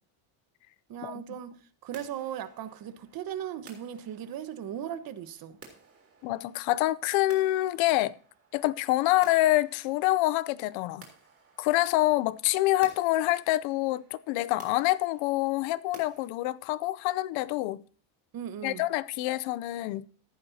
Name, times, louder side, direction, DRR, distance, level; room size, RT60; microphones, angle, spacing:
voice 1, 0.9-5.6 18.3-18.9, right 10 dB, 50° right, 1.3 m, -38 dB
sound 1, 1.9-16.3, right 5 dB, 30° right, 3.6 m, -56 dB
voice 2, 6.2-8.1 8.5-11.0 11.6-17.8 18.6-20.0, left 17 dB, 90° left, 0.7 m, -26 dB
14.5 x 11.0 x 2.8 m
cardioid pair, 135°, 45 cm